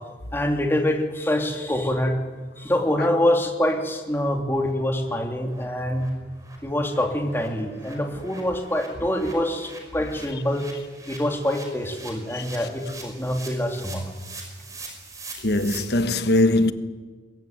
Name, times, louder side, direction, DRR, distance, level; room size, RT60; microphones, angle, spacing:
voice 1, 0.3-2.1 2.6-6.1 6.6-10.6 11.1-14.0, left 1 dB, 15° left, 3.1 m, -25 dB
sound 1, 2.8-2.9 3.2-3.3 3.7-3.8 4.1-4.3 4.6-4.7 5.0-5.2 5.5-5.6 5.9-15.8, right 3 dB, 20° right, 5.5 m, -43 dB
voice 2, 15.4-16.7, left 2 dB, 65° left, 1.3 m, -20 dB
22.5 x 21.5 x 9.3 m
head